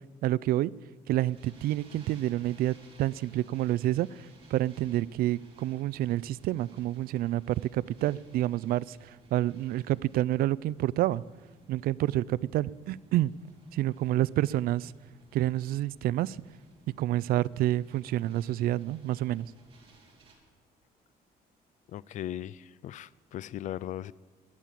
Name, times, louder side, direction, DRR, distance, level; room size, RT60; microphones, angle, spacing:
voice 1, 0.2-0.7 1.1-4.1 4.5-11.2 11.7-13.3 13.7-14.9 15.3-16.4 17.0-19.5, right 14 dB, 70° right, 0.4 m, -28 dB
sound 1, 1.1-20.3, right 3 dB, 35° right, 3.0 m, -59 dB
voice 2, 21.9-24.1, left 12 dB, 50° left, 0.4 m, -38 dB
21.5 x 8.5 x 7.5 m
cardioid pair, 155°, 16 cm